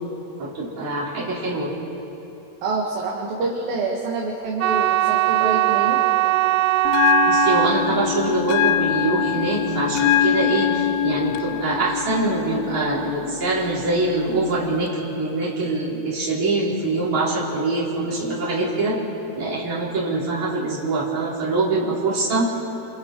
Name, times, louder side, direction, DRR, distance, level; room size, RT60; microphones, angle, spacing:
voice 1, 0.4-1.7 7.2-19.0 19.4-22.5, right 2 dB, 45° right, -6 dB, 5.6 m, -24 dB
voice 2, 2.6-6.0, right 3 dB, 65° right, -2 dB, 3.6 m, -26 dB
sound 1, 4.6-10.8, right 16 dB, 85° right, 2.7 m, -21 dB
Bell, 6.9-14.9, left 11 dB, 80° left, 2.3 m, -24 dB
28.5 x 28.5 x 4.8 m, 2.9 s
omnidirectional pair, 4.8 m